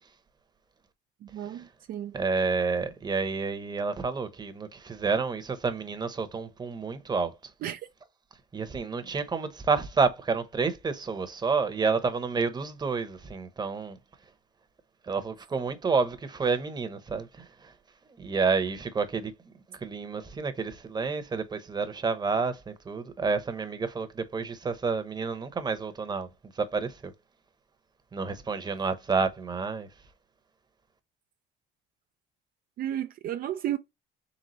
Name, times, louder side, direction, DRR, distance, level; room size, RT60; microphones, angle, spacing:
voice 1, 1.2-2.2 7.6-7.9 32.8-33.8, right 11 dB, 60° right, 0.5 m, -33 dB
voice 2, 2.1-7.5 8.5-14.0 15.0-17.7 18.2-19.3 19.7-26.3 26.5-27.1 28.1-29.9, right 4 dB, 25° right, 0.9 m, -29 dB
4.0 x 3.5 x 3.1 m
cardioid pair, 110°, 17 cm